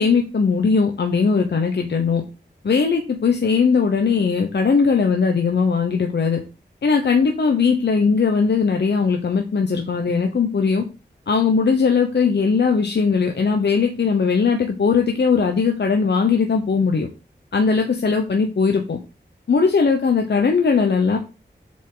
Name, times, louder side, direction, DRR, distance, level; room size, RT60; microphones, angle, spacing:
voice 1, 0.0-2.2 2.6-6.4 6.8-10.8 11.3-17.1 17.5-19.0 19.5-21.2, left 5 dB, 65° left, 4 dB, 0.9 m, -19 dB
7.2 x 5.1 x 3.8 m, 0.32 s
wide cardioid pair, 85°, 19 cm